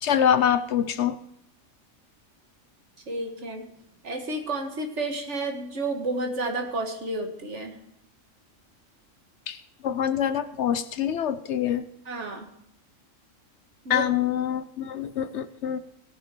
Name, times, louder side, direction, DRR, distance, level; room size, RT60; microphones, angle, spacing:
voice 1, 0.0-1.2 9.5-9.6 9.8-11.8 13.9-15.8, left 9 dB, 65° left, 13 dB, 0.9 m, -25 dB
voice 2, 3.1-3.7 4.0-7.8 12.1-12.5 13.9-14.1, right 2 dB, 60° right, 4 dB, 1.9 m, -31 dB
17.5 x 6.9 x 4.4 m, 0.75 s
omnidirectional pair, 1.3 m